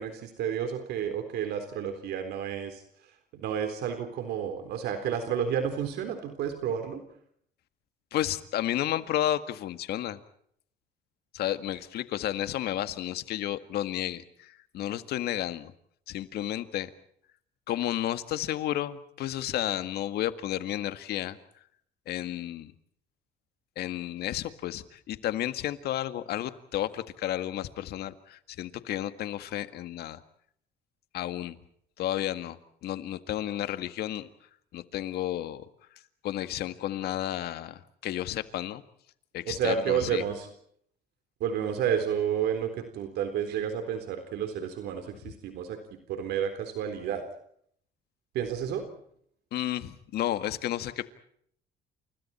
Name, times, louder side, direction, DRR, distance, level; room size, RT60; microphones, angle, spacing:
voice 1, 0.0-2.8 3.3-7.0 39.5-40.5 41.4-45.8 46.1-47.2 48.3-48.8, right 8 dB, 75° right, 7 dB, 3.9 m, -31 dB
voice 2, 8.1-10.2 11.3-15.7 16.1-16.9 17.7-21.4 22.1-22.7 23.8-30.2 31.1-31.6 32.0-34.3 34.7-35.7 36.2-38.8 39.3-40.2 49.5-51.1, left 12 dB, 70° left, 11 dB, 1.9 m, -32 dB
29.5 x 29.0 x 4.4 m, 0.67 s
cardioid pair, 110°, 17 cm